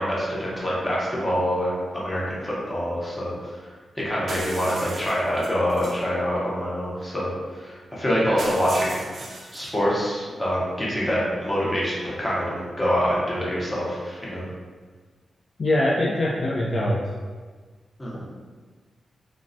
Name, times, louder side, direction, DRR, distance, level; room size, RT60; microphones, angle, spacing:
voice 1, 0.0-3.7 4.0-9.0 9.5-14.4 18.0-18.2, equal, 15° left, -7 dB, 0.7 m, -25 dB
sound 1, 4.3-6.0 8.4-9.7, right 2 dB, 60° right, 0.4 m, -37 dB
voice 2, 15.6-17.0, left 1 dB, 45° left, -5 dB, 0.3 m, -23 dB
3.1 x 2.3 x 2.5 m, 1.4 s
wide cardioid pair, 165°, 0 cm